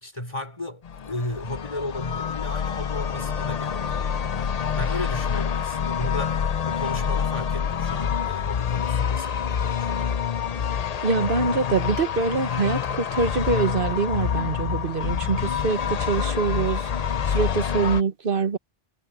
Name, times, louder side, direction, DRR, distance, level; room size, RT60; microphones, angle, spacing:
voice 1, 0.0-4.0 4.3-10.2, left 1 dB, 30° left, 4.4 m, -35 dB
sound 1, 0.8-18.0, left 7 dB, 45° left, 0.6 m, -27 dB
voice 2, 11.0-18.6, right 4 dB, 55° right, 1.4 m, -25 dB
omnidirectional pair, 1.1 m